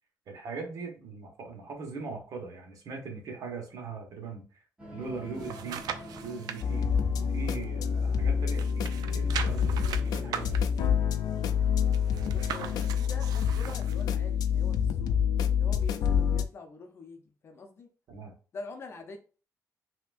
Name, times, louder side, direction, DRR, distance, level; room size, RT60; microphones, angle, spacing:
voice 1, 0.3-4.6 4.9-5.9 6.2-6.9 7.2-10.6 18.1-18.3, right 4 dB, 60° right, 1.4 m, -40 dB
sound 1, 4.8-10.6, equal, 15° right, 1.1 m, -46 dB
sound 2, 5.0-6.6 7.1-8.2 8.5-14.0 14.5-14.6, right 8 dB, 85° right, 0.5 m, -40 dB
sound 3, 6.6-16.5, left 7 dB, 90° left, 0.4 m, -27 dB
voice 2, 12.3-15.2 15.5-17.9 18.5-19.2, left 3 dB, 40° left, 0.7 m, -45 dB
5.8 x 2.9 x 2.5 m
cardioid pair, 180°, 6 cm